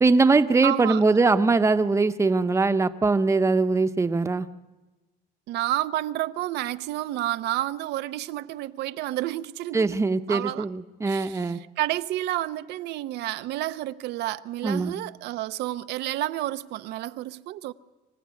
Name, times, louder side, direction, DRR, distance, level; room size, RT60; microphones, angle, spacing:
voice 1, 0.0-4.5 9.7-11.6 14.6-14.9, right 3 dB, 15° right, 0.8 m, -21 dB
voice 2, 0.6-1.0 5.5-9.9 10.3-10.7 11.0-11.5 11.8-17.7, right 14 dB, 80° right, 0.7 m, -30 dB
25.0 x 15.5 x 9.6 m
cardioid pair, 110°, 17 cm